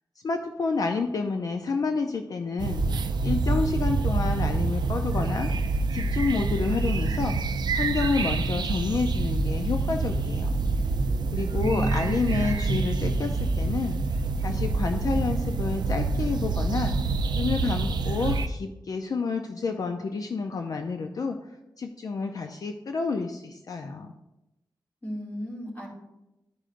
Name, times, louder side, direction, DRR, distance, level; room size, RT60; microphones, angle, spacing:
voice 1, 0.2-2.8 3.2-5.5 5.9-7.4 7.7-10.5 11.3-14.0 14.4-16.9 17.4-21.4 21.8-24.1, left 4 dB, 50° left, 5 dB, 0.4 m, -29 dB
sound 1, 2.6-18.5, right 3 dB, 65° right, 0.4 m, -26 dB
voice 2, 11.6-12.1 12.4-12.7 25.0-25.9, equal, 25° left, -5 dB, 2.2 m, -34 dB
12.0 x 5.1 x 2.5 m, 0.93 s
wide cardioid pair, 155°, 8 cm